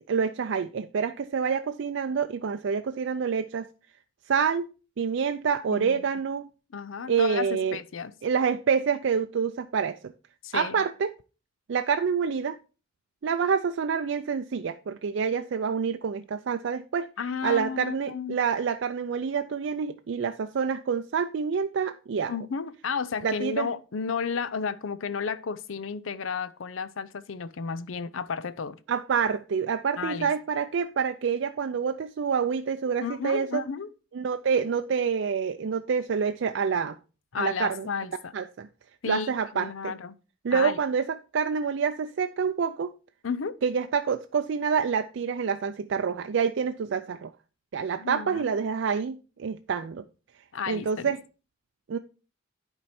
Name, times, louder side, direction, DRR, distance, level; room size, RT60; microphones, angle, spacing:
voice 1, 0.1-3.7 4.3-4.7 5.0-6.5 7.1-7.8 8.2-10.1 10.5-11.1 11.7-12.6 13.2-17.1 17.4-22.3 23.2-23.7 28.9-33.6 34.1-37.0 37.4-37.9 38.3-38.7 39.0-39.9 40.4-42.9 43.6-47.3 47.7-50.0 50.7-51.2 51.9-52.0, right 6 dB, 65° right, 0.4 m, -27 dB
voice 2, 5.7-6.0 6.7-8.1 10.4-10.8 17.2-18.4 22.3-28.8 30.0-30.3 33.0-33.9 37.3-38.3 39.0-40.2 40.5-40.8 43.2-43.6 48.0-48.6 50.5-51.1, left 5 dB, 85° left, 0.6 m, -33 dB
10.5 x 4.5 x 4.3 m
head